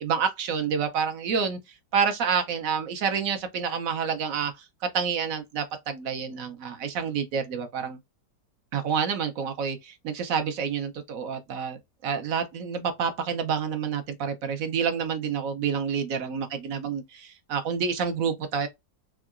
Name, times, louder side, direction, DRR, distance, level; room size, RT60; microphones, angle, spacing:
voice 1, 0.0-1.6 1.9-4.5 4.8-8.0 8.7-18.7, right 6 dB, 65° right, 0.9 m, -28 dB
3.7 x 2.2 x 2.3 m
omnidirectional pair, 2.0 m